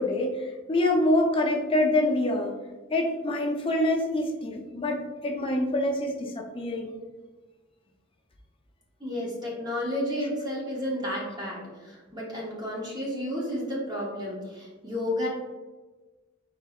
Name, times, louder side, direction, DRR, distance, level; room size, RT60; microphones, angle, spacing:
voice 1, 0.0-2.5 2.9-6.9, left 1 dB, 25° left, 1 dB, 0.6 m, -26 dB
voice 2, 9.0-15.3, left 1 dB, 20° right, -4 dB, 0.8 m, -32 dB
4.5 x 4.0 x 2.4 m, 1.3 s
head